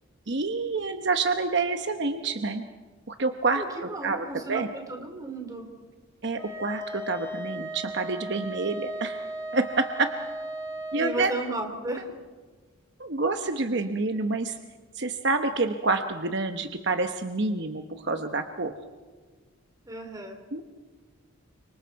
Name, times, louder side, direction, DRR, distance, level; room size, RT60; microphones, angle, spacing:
voice 1, 0.3-2.7 3.1-4.7 6.2-9.2 9.5-10.1 10.9-11.3 13.0-14.6 14.9-18.7 20.5-20.6, right 3 dB, 55° right, 7 dB, 1.0 m, -28 dB
voice 2, 3.5-5.7 10.9-12.1 19.8-20.4, right 2 dB, 15° right, 4 dB, 2.9 m, -34 dB
Wind instrument woodwind instrument, 6.4-11.2, right 1 dB, 10° left, 5.1 m, -36 dB
29.5 x 26.0 x 4.7 m, 1.5 s
head